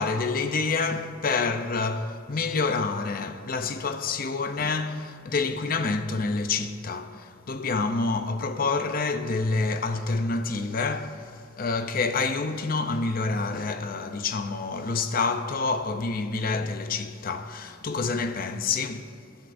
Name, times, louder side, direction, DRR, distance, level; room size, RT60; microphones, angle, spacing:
voice 1, 0.0-19.1, left 4 dB, 45° left, 0.6 m, -28 dB
20.5 x 11.5 x 2.7 m
head